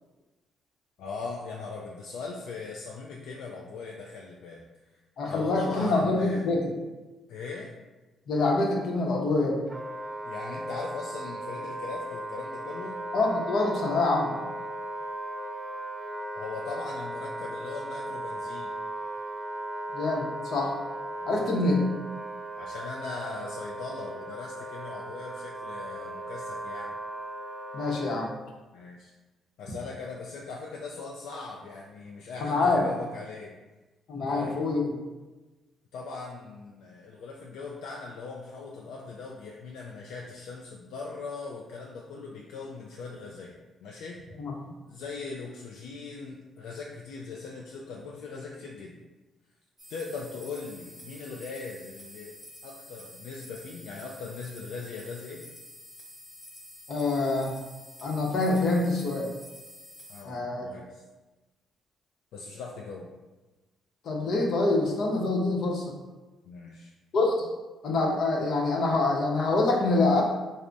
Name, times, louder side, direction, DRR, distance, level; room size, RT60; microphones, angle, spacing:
voice 1, 1.0-4.6 5.3-6.4 7.3-7.7 10.2-13.0 16.4-18.7 21.2-21.6 22.6-26.9 28.7-29.1 29.6-33.5 34.3-34.6 35.9-44.2 44.8-49.0 49.9-52.3 52.6-55.4 60.1-61.0 62.3-63.1 66.5-66.9, left 4 dB, 85° left, -2 dB, 0.3 m, -40 dB
voice 2, 5.2-6.6 8.3-9.6 13.1-14.4 19.9-20.7 21.3-21.8 27.7-28.3 32.4-32.9 34.1-34.9 44.4-44.5 56.9-57.5 58.0-59.3 60.2-60.7 64.0-65.9 67.1-67.5 67.8-70.2, left 2 dB, 65° left, -1 dB, 0.8 m, -25 dB
Wind instrument woodwind instrument, 9.7-28.3, right 1 dB, 15° right, 0.4 m, -37 dB
sound 1, 49.8-60.2, equal, 20° left, 1.0 m, -49 dB
3.3 x 2.1 x 3.8 m, 1.2 s
cardioid pair, 90°, 0 cm